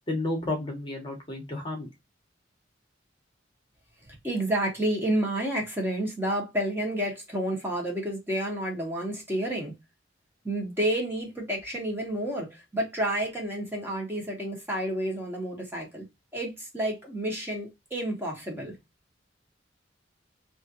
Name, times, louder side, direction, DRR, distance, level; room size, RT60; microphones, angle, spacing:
voice 1, 0.1-1.9, left 2 dB, 25° left, 1.0 m, -31 dB
voice 2, 4.2-9.7 10.4-16.0 16.3-18.7, right 1 dB, 10° right, 1.1 m, -30 dB
3.2 x 2.6 x 2.7 m
head